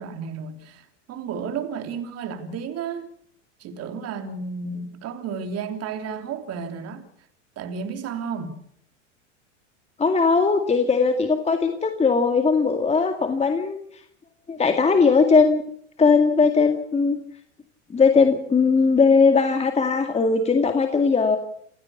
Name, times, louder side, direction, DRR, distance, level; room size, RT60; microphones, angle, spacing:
voice 1, 0.0-3.1 3.6-7.1 7.6-8.6, right 6 dB, 40° right, 3.5 m, -32 dB
voice 2, 10.0-13.8 14.5-15.6 16.0-17.2 17.9-21.4, left 4 dB, 15° left, 2.2 m, -19 dB
28.5 x 16.0 x 7.0 m
hypercardioid pair, 105°, 37 cm